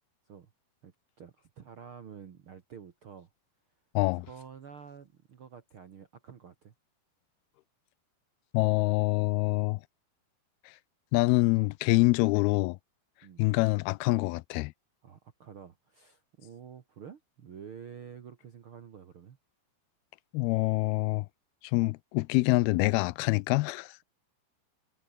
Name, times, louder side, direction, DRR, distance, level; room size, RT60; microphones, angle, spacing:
voice 1, 1.2-3.3 4.2-6.7 13.2-13.5 15.0-19.4, right 7 dB, 60° right, 1.4 m, -49 dB
voice 2, 4.0-4.3 8.5-9.8 10.7-10.8 11.1-12.8 13.4-14.7 20.3-21.3 21.6-24.0, left 22 dB, 85° left, 2.4 m, -26 dB
omnidirectional pair, 4.5 m